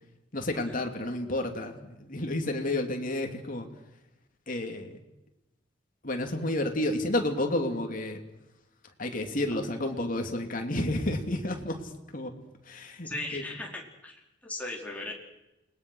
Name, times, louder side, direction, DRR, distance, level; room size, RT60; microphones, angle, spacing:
voice 1, 0.3-3.7 4.5-5.0 6.0-8.2 9.0-11.8 12.1-12.3 12.6-13.4, left 1 dB, 45° left, 4 dB, 3.1 m, -31 dB
voice 2, 13.0-15.1, left 2 dB, 10° left, -1 dB, 4.5 m, -38 dB
29.5 x 20.5 x 6.5 m, 0.94 s
head